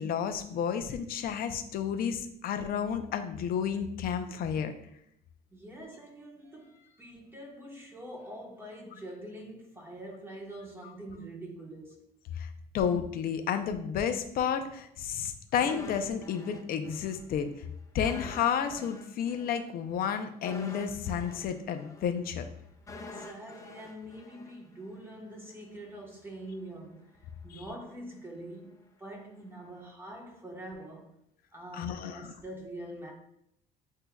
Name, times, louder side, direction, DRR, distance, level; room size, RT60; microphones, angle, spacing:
voice 1, 0.0-4.7 12.4-12.5 12.7-17.5 17.9-22.4 27.5-27.6 31.7-32.3, left 7 dB, 60° left, 0.6 m, -31 dB
voice 2, 5.5-12.1 23.0-31.1 31.5-33.1, right 1 dB, 15° right, 1.2 m, -45 dB
sound 1, 15.6-17.2 17.5-17.6 18.0-25.1 25.4-25.5, left 2 dB, 20° left, 0.6 m, -47 dB
8.0 x 2.7 x 2.3 m
cardioid pair, 110°, 17 cm